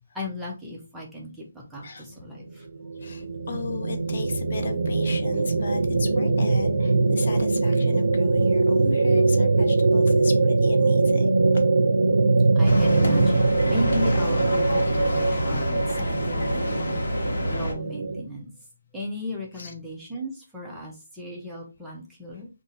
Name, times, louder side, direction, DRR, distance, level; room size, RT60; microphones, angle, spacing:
voice 1, 0.1-1.5 1.7-2.6 12.6-18.5 18.9-22.5, left 1 dB, 5° right, 0.7 m, -35 dB
sound 1, 2.4-18.2, right 3 dB, 75° right, 0.6 m, -22 dB
voice 2, 3.0-11.6 12.8-12.9 14.1-14.2 14.5-14.6 19.5-19.7, left 4 dB, 50° left, 0.6 m, -36 dB
sound 2, 12.6-17.7, left 1 dB, 70° left, 1.1 m, -28 dB
2.6 x 2.5 x 3.9 m
hypercardioid pair, 170°, 0 cm